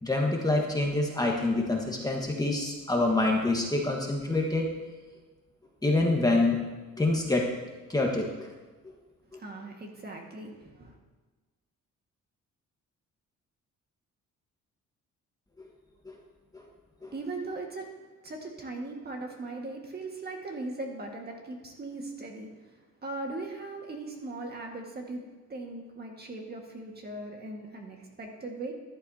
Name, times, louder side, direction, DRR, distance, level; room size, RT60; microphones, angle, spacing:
voice 1, 0.0-4.7 5.8-6.6 7.0-7.6 7.9-8.5 16.0-16.2 16.5-16.7 17.0-17.1, left 2 dB, 10° left, -1 dB, 1.4 m, -26 dB
voice 2, 9.4-11.0 17.0-17.9 18.2-22.7 23.0-25.2 25.5-28.7, right 2 dB, 35° right, 1 dB, 1.8 m, -39 dB
13.5 x 11.5 x 2.8 m, 1.3 s
cardioid pair, 125°, 30 cm